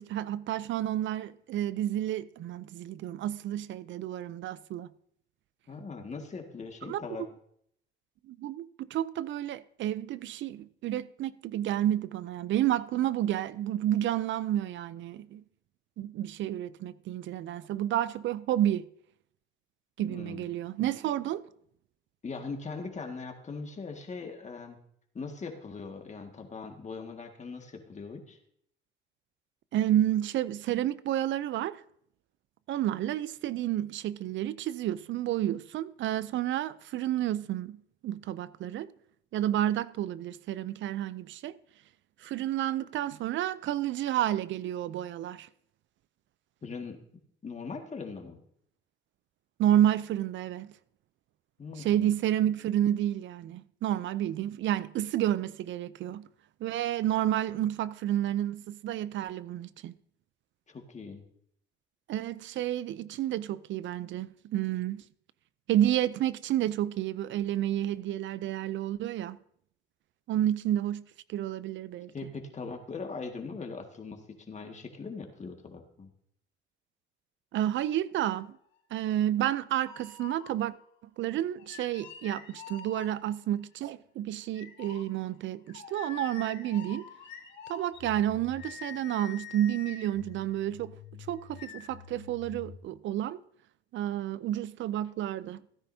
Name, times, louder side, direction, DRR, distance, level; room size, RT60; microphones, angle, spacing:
voice 1, 0.0-4.9 6.9-7.0 8.3-15.4 16.0-18.9 20.0-21.5 29.7-31.8 32.7-37.8 38.0-38.9 39.3-41.6 42.2-45.5 49.6-50.7 51.8-56.3 56.6-59.9 62.1-65.0 65.7-69.4 70.3-72.1 77.5-78.6 78.9-80.7 81.2-87.1 87.7-91.0 91.3-93.4 93.9-95.6, right 12 dB, 70° right, 0.4 m, -30 dB
voice 2, 5.7-7.2 20.0-20.5 22.2-24.8 25.1-28.4 46.6-47.0 47.4-48.4 51.6-52.1 60.7-61.2 72.1-74.2 74.5-76.1, left 4 dB, 35° left, 1.8 m, -40 dB
sound 1, 79.8-80.8 81.6-83.5 84.5-92.8, left 7 dB, 65° left, 2.1 m, -46 dB
16.0 x 9.9 x 2.7 m
cardioid pair, 90°, 20 cm